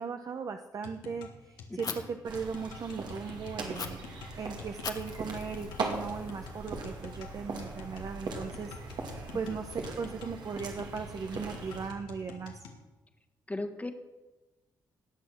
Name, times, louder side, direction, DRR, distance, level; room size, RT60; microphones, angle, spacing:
voice 1, 0.0-4.0 4.4-12.6, right 5 dB, 50° right, 6 dB, 0.8 m, -38 dB
sound 1, 0.8-12.8, left 4 dB, 85° left, 1.6 m, -47 dB
voice 2, 1.7-2.0 9.5-9.6 13.5-13.9, left 2 dB, 20° left, 6 dB, 1.5 m, -37 dB
Fire, 1.8-2.0 3.7-3.9 4.8-6.8, left 6 dB, 55° left, 1.4 m, -41 dB
sound 2, 2.2-11.9, right 3 dB, 70° right, 2.2 m, -40 dB
18.5 x 6.2 x 6.2 m, 1.1 s
supercardioid pair, 55°, 8 cm